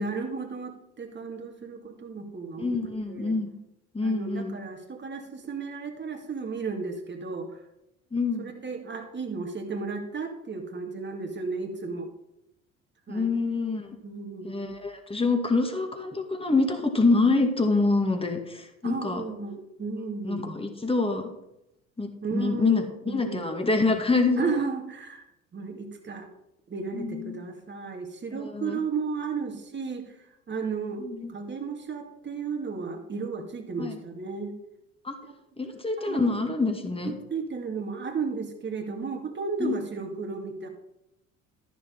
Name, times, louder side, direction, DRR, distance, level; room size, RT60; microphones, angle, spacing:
voice 1, 0.0-2.8 3.1-3.4 4.0-7.5 8.4-12.1 13.1-13.3 14.0-14.6 18.8-20.7 22.2-23.6 24.4-25.2 25.5-26.3 26.7-30.2 30.5-31.0 31.3-34.5 35.2-35.3 36.0-36.3 37.0-40.7, right 4 dB, 30° right, 3 dB, 2.2 m, -34 dB
voice 2, 2.6-3.5 3.9-4.6 8.1-8.5 13.1-14.0 14.4-19.2 20.2-21.3 22.0-24.6 26.9-27.4 28.3-28.8 31.0-31.3 33.8-34.0 35.0-35.1 35.6-37.2 39.6-39.8, left 3 dB, 15° left, 5 dB, 2.2 m, -26 dB
13.5 x 7.0 x 5.4 m, 0.84 s
figure-of-eight pair, 60°, 39 cm